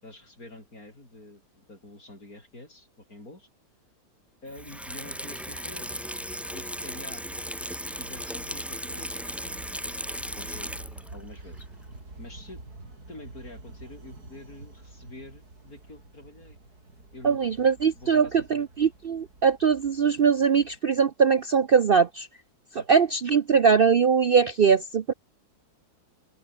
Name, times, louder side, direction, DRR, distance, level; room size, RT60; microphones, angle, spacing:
voice 1, 0.0-3.5 4.4-5.9 6.5-7.4 7.8-10.0 10.4-10.7 11.1-11.7 12.2-12.6 13.1-16.6 17.1-18.7 22.7-22.9, left 2 dB, 50° left, 8.6 m, -47 dB
Water tap faucet / Sink (filling or washing), 4.5-11.2 11.6-11.7, equal, ahead, 3.9 m, -36 dB
sound 1, 4.5-20.8, right 2 dB, 55° right, 6.1 m, -48 dB
voice 2, 17.2-22.3 22.9-25.1, right 6 dB, 85° right, 0.5 m, -21 dB
open air
omnidirectional pair, 2.0 m